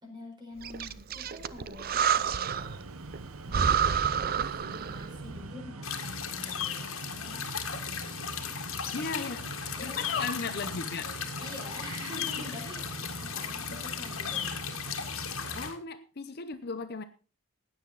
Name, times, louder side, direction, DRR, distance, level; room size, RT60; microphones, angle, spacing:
voice 1, 0.0-2.9 3.4-7.4 8.9-9.4 9.7-10.2 11.4-12.9 13.2-14.6, left 1 dB, 20° right, 1 dB, 4.5 m, -46 dB
Breathing, 0.6-2.8 3.1-3.2 3.5-5.2, right 7 dB, 45° right, 0.5 m, -29 dB
sound 1, 2.5-15.7, right 2 dB, 75° right, 1.0 m, -42 dB
sound 2, 5.8-15.7, left 8 dB, 70° left, 1.8 m, -36 dB
voice 2, 8.9-9.5 9.8-11.1 15.5-17.0, left 4 dB, 45° left, 11 dB, 0.7 m, -36 dB
16.0 x 9.5 x 4.0 m, 0.36 s
head